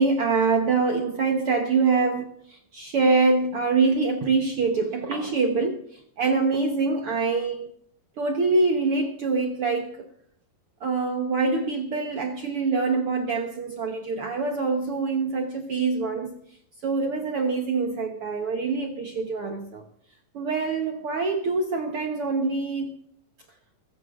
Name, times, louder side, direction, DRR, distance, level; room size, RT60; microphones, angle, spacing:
voice 1, 0.0-7.7 8.2-10.1 10.8-16.4 16.8-19.8 20.3-22.9, right 4 dB, 70° right, 1.3 m, -25 dB
20.5 x 16.0 x 2.5 m
omnidirectional pair, 4.3 m